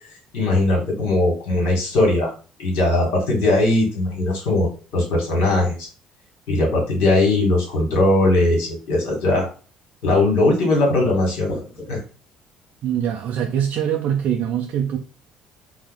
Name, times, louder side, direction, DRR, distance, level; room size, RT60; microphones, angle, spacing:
voice 1, 0.3-2.3 2.6-5.9 6.5-9.5 10.0-12.0, left 2 dB, 60° left, 1.5 m, -19 dB
voice 2, 12.8-15.0, right 9 dB, 50° right, 0.5 m, -23 dB
3.9 x 2.1 x 3.9 m
figure-of-eight pair, 50°, 3 cm